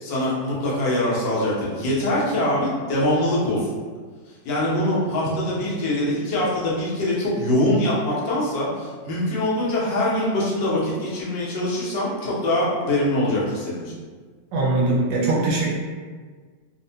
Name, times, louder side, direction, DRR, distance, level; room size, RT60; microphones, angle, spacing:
voice 1, 0.0-3.8 4.4-14.0, left 1 dB, 80° left, -7 dB, 1.6 m, -23 dB
voice 2, 14.5-15.8, right 2 dB, 85° right, -3 dB, 1.4 m, -21 dB
3.5 x 2.1 x 2.7 m, 1.5 s
omnidirectional pair, 2.0 m